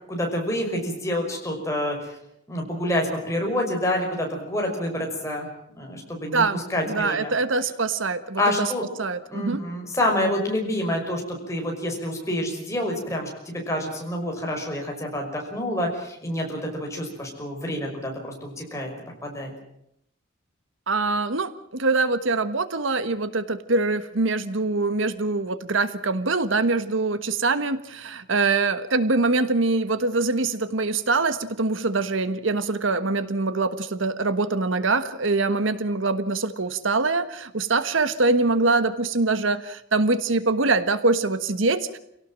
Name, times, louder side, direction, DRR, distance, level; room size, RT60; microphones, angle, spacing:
voice 1, 0.1-2.0 2.5-5.5 5.8-7.3 8.4-8.8 9.3-18.9 19.2-19.5, left 1 dB, 15° left, 0 dB, 5.7 m, -27 dB
voice 2, 6.9-8.7 9.0-9.6 20.9-42.0, right 3 dB, 80° right, 12 dB, 1.3 m, -24 dB
27.0 x 17.5 x 7.6 m, 0.76 s
head